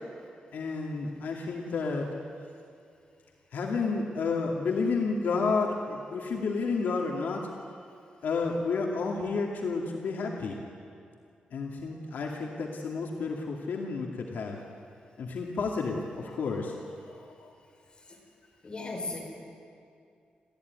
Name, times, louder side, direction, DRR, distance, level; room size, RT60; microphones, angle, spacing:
voice 1, 0.5-2.1 3.5-7.5 8.2-10.5 11.5-14.6 15.2-17.5, left 4 dB, 75° left, 0 dB, 2.4 m, -31 dB
voice 2, 18.6-19.2, left 3 dB, 30° left, 0 dB, 5.0 m, -35 dB
30.0 x 14.5 x 9.6 m, 2.4 s
wide cardioid pair, 170°, 3 cm